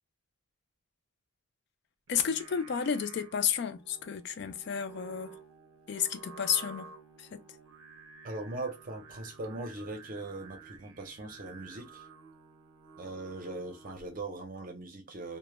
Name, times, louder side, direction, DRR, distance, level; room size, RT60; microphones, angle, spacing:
voice 1, 2.1-5.3 5.9-6.9 7.2-7.4, left 7 dB, 55° left, 0.3 m, -31 dB
Singing, 2.1-14.3, right 5 dB, 85° right, 0.5 m, -52 dB
voice 2, 8.2-12.1 13.0-15.4, right 2 dB, 40° right, 0.6 m, -40 dB
2.1 x 2.1 x 3.0 m
head